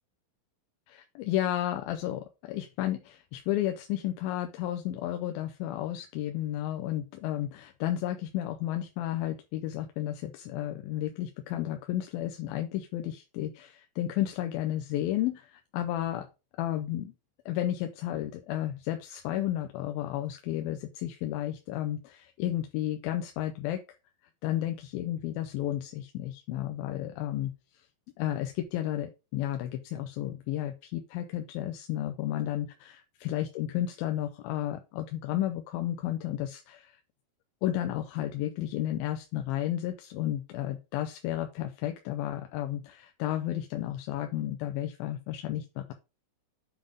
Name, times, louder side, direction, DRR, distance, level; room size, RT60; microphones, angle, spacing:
voice 1, 0.9-16.3 16.6-17.1 17.5-23.8 24.4-27.5 28.2-37.0 37.6-45.9, left 13 dB, 90° left, 6 dB, 2.5 m, -32 dB
7.5 x 3.5 x 5.1 m, 0.28 s
omnidirectional pair, 4.1 m